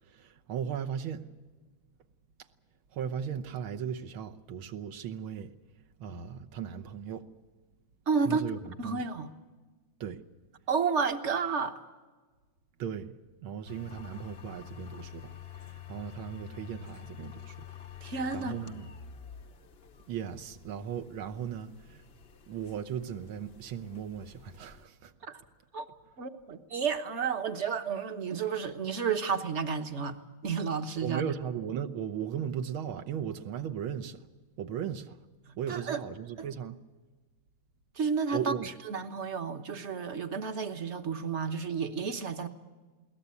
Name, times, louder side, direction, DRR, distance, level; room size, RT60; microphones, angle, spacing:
voice 1, 0.1-1.3 2.9-5.5 6.0-7.3 8.3-8.6 8.8-9.0 10.0-10.2 12.8-13.2 13.4-17.6 18.3-18.9 20.1-22.0 22.5-25.1 31.0-34.2 34.6-35.2 35.6-36.8 38.3-38.7, right 8 dB, 80° right, 1.8 m, -37 dB
voice 2, 8.1-8.5 8.8-9.3 10.7-11.8 18.0-18.6 25.2-25.4 25.7-25.9 26.2-31.3 35.5-36.0 36.4-36.5 37.9-42.5, right 5 dB, 40° right, 1.1 m, -31 dB
sound 1, 13.7-24.8, left 9 dB, 50° left, 0.7 m, -48 dB
22.0 x 18.0 x 8.4 m
omnidirectional pair, 2.3 m